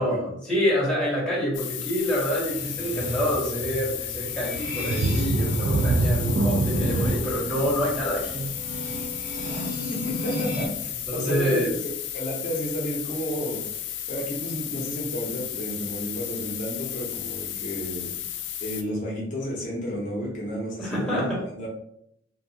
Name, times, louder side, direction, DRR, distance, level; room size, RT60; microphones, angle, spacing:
voice 1, 0.0-8.5 11.1-11.7 20.8-21.4, equal, 5° left, -6 dB, 0.9 m, -27 dB
sound 1, 1.5-18.8, left 11 dB, 70° left, 0.3 m, -34 dB
sound 2, 2.2-10.7, equal, 40° right, 0.9 m, -34 dB
sound 3, 4.8-10.3 10.7-10.9 11.4-11.5, right 2 dB, 90° right, 0.4 m, -26 dB
voice 2, 9.9-18.1 18.6-21.7, equal, 40° left, -4 dB, 0.6 m, -32 dB
2.6 x 2.3 x 2.7 m, 0.72 s
head